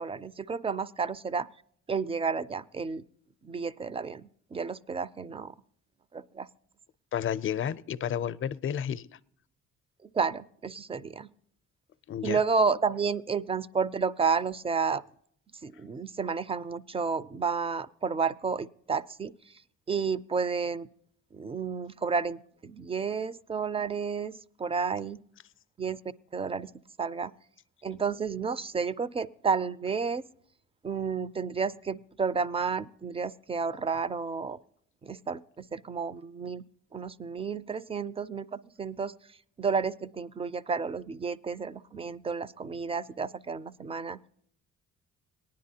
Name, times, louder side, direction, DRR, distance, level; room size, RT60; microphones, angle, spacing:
voice 1, 0.0-1.5 1.9-3.0 3.4-5.5 6.1-6.5 10.0-11.3 12.2-15.0 15.6-19.5 19.9-20.9 21.3-24.3 24.6-25.2 25.8-26.0 26.3-26.7 27.0-27.3 27.8-30.2 30.8-34.6 35.0-36.6 36.9-39.1 39.6-44.2, right 5 dB, 20° right, 0.4 m, -31 dB
voice 2, 7.1-9.1 12.1-12.4, left 9 dB, 45° left, 0.5 m, -31 dB
18.5 x 10.5 x 2.8 m
cardioid pair, 90°, 30 cm